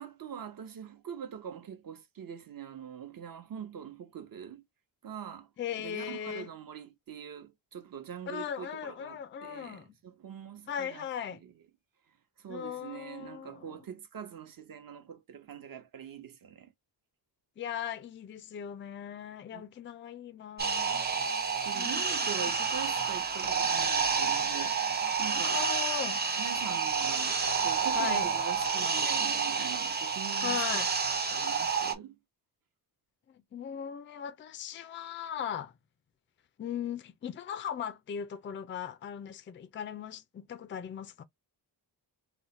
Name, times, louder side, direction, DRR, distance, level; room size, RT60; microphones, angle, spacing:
voice 1, 0.0-4.6 5.0-5.5 5.8-11.0 11.4-11.5 12.4-16.7 19.5-19.6 21.6-24.8 25.2-25.7 26.4-30.6 31.3-32.2, right 8 dB, 50° right, 0.9 m, -43 dB
voice 2, 5.6-6.5 8.3-9.9 10.7-11.4 12.5-13.8 17.6-22.7 25.3-26.2 27.9-28.4 30.4-30.9 33.3-35.7 36.6-41.2, left 8 dB, 30° left, 0.4 m, -38 dB
sound 1, 20.6-31.9, right 5 dB, 25° right, 0.6 m, -29 dB
3.1 x 2.1 x 4.1 m
wide cardioid pair, 140°, 42 cm